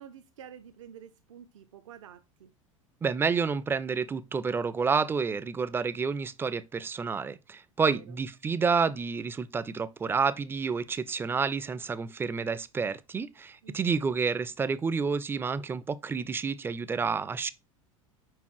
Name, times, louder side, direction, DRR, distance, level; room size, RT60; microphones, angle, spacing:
voice 1, 0.0-2.5 7.8-8.2 13.6-14.0, right 9 dB, 65° right, 0.5 m, -49 dB
voice 2, 3.0-17.5, right 5 dB, 15° right, 0.4 m, -29 dB
5.2 x 4.6 x 4.6 m
figure-of-eight pair, 80°, 17 cm